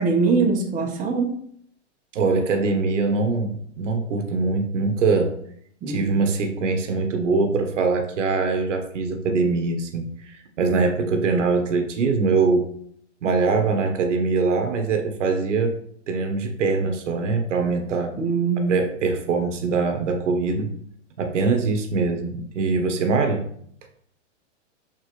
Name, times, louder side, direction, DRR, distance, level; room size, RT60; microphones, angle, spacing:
voice 1, 0.0-1.4 5.8-6.1 18.2-18.7, right 4 dB, 20° right, 0 dB, 1.3 m, -22 dB
voice 2, 2.1-5.3 5.9-12.7 13.2-15.8 16.1-18.2 18.7-20.7 21.2-23.4, right 4 dB, 80° right, 5 dB, 1.4 m, -23 dB
7.7 x 4.2 x 3.2 m, 0.65 s
hypercardioid pair, 135°, 36 cm